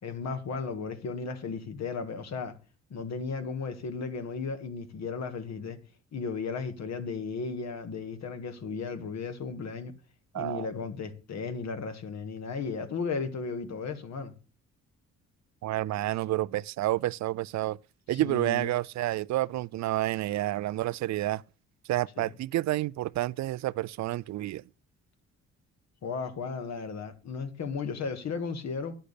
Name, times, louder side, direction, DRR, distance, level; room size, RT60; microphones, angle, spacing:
voice 1, 0.0-2.5 2.9-5.8 6.1-9.9 10.3-14.3 18.1-18.7 22.2-22.3 26.0-29.0, left 5 dB, 60° left, 1.8 m, -35 dB
voice 2, 10.3-10.7 15.6-17.8 18.1-21.4 21.9-24.6, right 15 dB, 65° right, 0.4 m, -29 dB
10.0 x 6.6 x 6.7 m
cardioid pair, 90°, 30 cm